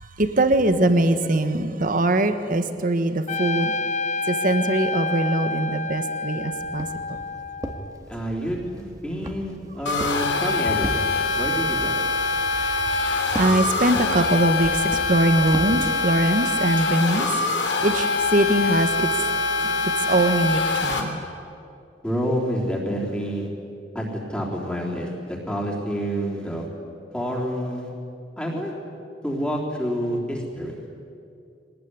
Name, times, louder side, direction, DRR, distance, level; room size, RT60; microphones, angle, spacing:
voice 1, 0.0-3.7 4.2-6.9 12.8-19.2 19.6-21.2, right 1 dB, 50° right, 9 dB, 1.5 m, -22 dB
Trumpet, 3.3-8.0, left 3 dB, 40° left, 0.7 m, -29 dB
Walk footsteps, 6.5-15.9, right 1 dB, 20° right, 1.9 m, -37 dB
voice 2, 8.1-11.1 11.4-12.0 18.3-19.3 22.0-23.5 23.9-26.7 27.1-27.9 28.4-28.7 29.2-30.7, equal, 5° left, -3 dB, 3.6 m, -28 dB
sound 1, 9.9-21.0, left 3 dB, 90° left, 3.3 m, -24 dB
24.0 x 19.0 x 9.8 m, 2.5 s
head